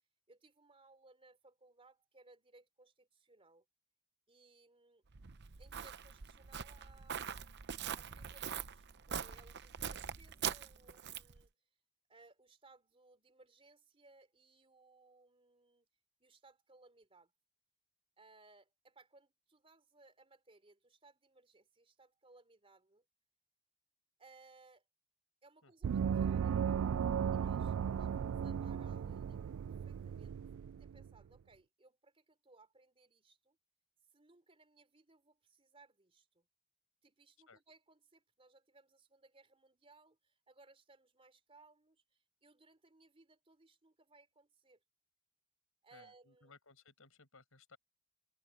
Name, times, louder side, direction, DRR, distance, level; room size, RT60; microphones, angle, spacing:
voice 1, 0.3-3.7 4.3-5.0 5.6-7.5 7.9-11.5 12.1-15.9 16.2-17.3 18.2-23.0 24.2-24.8 25.4-26.8 27.3-33.6 34.1-36.5 37.0-44.8 45.8-46.5, right 3 dB, 25° right, 3.7 m, -64 dB
Walk footsteps, 5.1-11.4, right 8 dB, 55° right, 0.8 m, -43 dB
voice 2, 25.6-26.0 37.5-37.6 45.9-47.8, left 4 dB, 75° left, 6.8 m, -62 dB
Gong, 25.8-31.1, right 7 dB, 75° right, 0.3 m, -36 dB
head